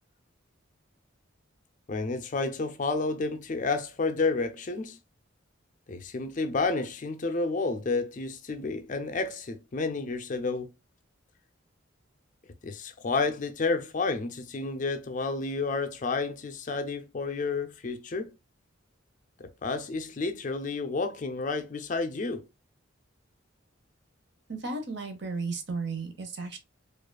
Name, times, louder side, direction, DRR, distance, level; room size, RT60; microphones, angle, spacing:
voice 1, 1.9-5.0 5.9-10.7 12.6-18.3 19.4-22.5, left 3 dB, 40° left, 0.4 m, -30 dB
voice 2, 24.5-26.6, right 3 dB, 55° right, 0.8 m, -34 dB
4.8 x 2.4 x 2.2 m
head